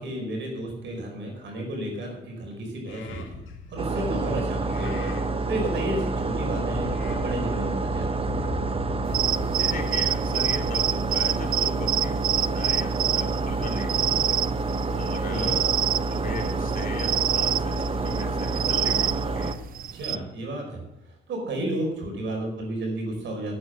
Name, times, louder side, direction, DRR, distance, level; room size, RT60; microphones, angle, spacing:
voice 1, 0.0-3.2 3.7-5.1 5.4-8.3 15.3-15.5 19.9-20.8 21.3-23.6, right 1 dB, 65° right, 1 dB, 5.0 m, -32 dB
Livestock farm animals working animals, 2.9-10.7, left 4 dB, 80° left, 2.2 m, -40 dB
sound 1, 3.8-19.5, right 3 dB, 30° right, 0.9 m, -28 dB
sound 2, 9.1-20.2, right 10 dB, 50° right, 0.4 m, -27 dB
voice 2, 9.5-14.4 14.9-15.7 16.1-19.6, left 3 dB, 45° left, 1 dB, 3.3 m, -37 dB
11.5 x 8.9 x 6.6 m, 0.89 s
cardioid pair, 90°, 20 cm